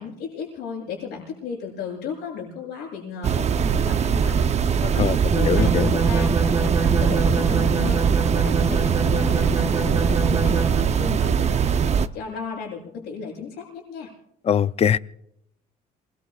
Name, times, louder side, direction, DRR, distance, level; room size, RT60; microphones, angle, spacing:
voice 1, 0.0-6.3 6.6-11.8 12.1-14.1, left 6 dB, 80° left, 7.5 m, -35 dB
sound 1, 3.2-12.1, right 7 dB, 40° right, 0.7 m, -21 dB
sound 2, 5.3-11.0, right 3 dB, 20° right, 3.1 m, -26 dB
voice 2, 5.4-5.9 14.4-15.0, left 8 dB, 40° left, 0.5 m, -21 dB
27.5 x 21.5 x 2.4 m
cardioid pair, 110°, 17 cm